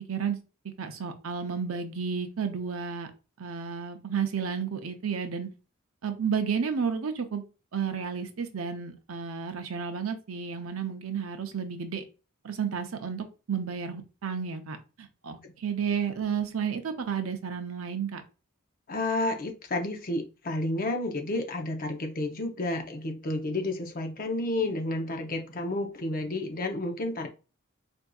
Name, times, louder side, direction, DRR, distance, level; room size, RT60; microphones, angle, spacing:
voice 1, 0.1-0.4 0.8-3.1 3.4-5.5 6.0-7.4 7.7-12.0 12.4-18.2, right 6 dB, 90° right, 7 dB, 0.6 m, -32 dB
voice 2, 18.9-27.3, left 2 dB, 45° left, 4 dB, 0.7 m, -31 dB
4.5 x 2.6 x 2.3 m, 0.32 s
head